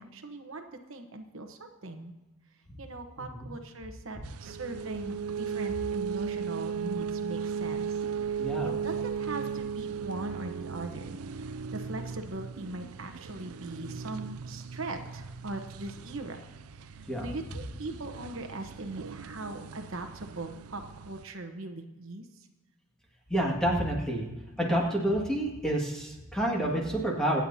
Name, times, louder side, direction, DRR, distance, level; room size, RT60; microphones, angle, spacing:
voice 1, 0.0-2.1 2.8-16.4 16.7-16.9 17.2-22.2, right 2 dB, 65° right, 5 dB, 1.1 m, -40 dB
voice 2, 3.2-3.5 8.4-8.7 17.1-17.3 23.3-24.3 24.6-27.4, right 1 dB, 5° left, -2 dB, 2.0 m, -28 dB
sound 1, 4.2-21.2, right 6 dB, 80° right, 0.4 m, -37 dB
25.0 x 8.9 x 2.8 m, 1.1 s
head